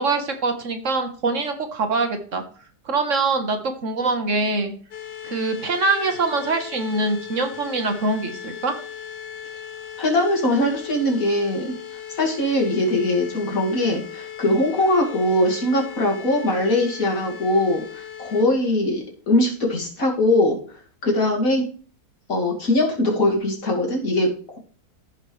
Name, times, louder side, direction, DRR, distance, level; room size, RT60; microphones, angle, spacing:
voice 1, 0.0-2.4 2.8-4.7 5.2-8.7, right 3 dB, 50° right, 6 dB, 1.4 m, -24 dB
sound 1, 4.9-18.4, left 9 dB, 75° left, 1.7 m, -38 dB
voice 2, 10.0-11.7 12.2-20.6 21.0-21.7 22.3-24.6, left 1 dB, 50° left, 0 dB, 2.7 m, -21 dB
15.0 x 5.8 x 3.2 m, 0.43 s
omnidirectional pair, 1.8 m